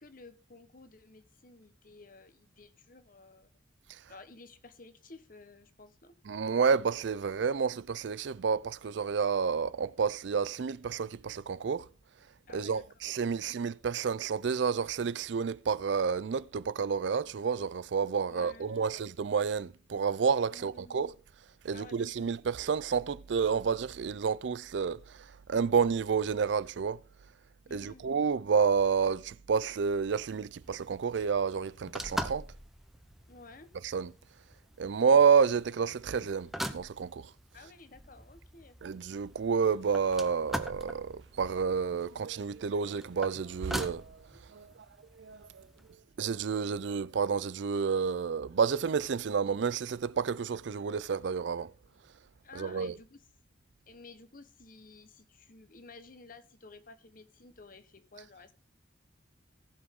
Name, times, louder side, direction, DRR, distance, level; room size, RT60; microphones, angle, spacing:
voice 1, 0.0-3.5 4.1-6.1 12.5-12.8 13.3-13.5 18.3-19.0 20.5-21.1 21.7-22.0 27.7-28.1 33.3-33.7 37.5-38.8 52.4-53.2 53.9-58.5, left 3 dB, 45° left, 1.0 m, -53 dB
voice 2, 6.3-11.9 12.5-21.1 21.6-27.0 27.7-32.5 33.8-34.1 34.8-37.3 38.8-44.2 44.5-44.7 45.1-45.7 46.2-51.7 52.6-52.9, right 6 dB, 65° right, 0.4 m, -30 dB
sound 1, 30.6-45.9, equal, ahead, 0.7 m, -43 dB
18.5 x 6.2 x 3.7 m
head